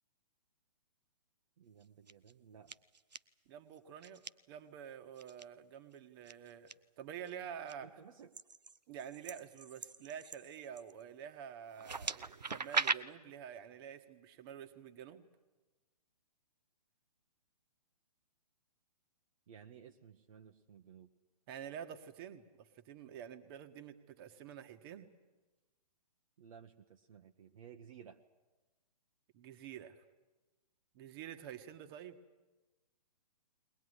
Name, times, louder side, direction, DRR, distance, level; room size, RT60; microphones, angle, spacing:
voice 1, 1.6-2.7 7.8-8.3 19.5-21.1 26.4-28.2, right 8 dB, 55° right, 4 dB, 1.3 m, -56 dB
sound 1, 1.8-2.3 2.7-3.2 4.0-4.3 5.2-5.4 6.3-6.7 7.3-7.7 8.3-11.0 11.7-13.0, right 4 dB, 85° right, 0.7 m, -39 dB
voice 2, 3.4-6.7 7.0-8.0 8.9-15.3 21.5-25.1 29.3-30.0 30.9-32.2, right 8 dB, 35° right, 9 dB, 1.6 m, -48 dB
21.5 x 19.5 x 9.8 m, 1.1 s
figure-of-eight pair, 125°, 21 cm